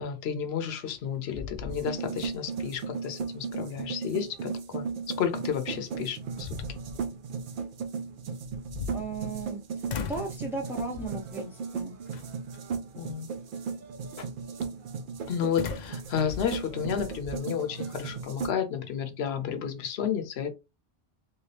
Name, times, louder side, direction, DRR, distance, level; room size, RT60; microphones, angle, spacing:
voice 1, 0.0-4.9 5.2-6.8 13.0-13.3 14.2-14.3 15.3-20.5, left 8 dB, 70° left, 0.9 m, -32 dB
sound 1, 0.7-1.0 1.3-2.3 2.7-2.8 5.5-5.6 6.2-7.1 8.4-9.5 9.9-10.4 10.9-11.3 12.1-12.6 15.6-17.4, left 7 dB, 55° left, 0.5 m, -39 dB
sound 2, 1.7-18.5, right 5 dB, 60° right, 0.7 m, -36 dB
voice 2, 8.9-11.9, right 3 dB, 5° right, 0.3 m, -36 dB
3.1 x 2.9 x 3.2 m
omnidirectional pair, 1.1 m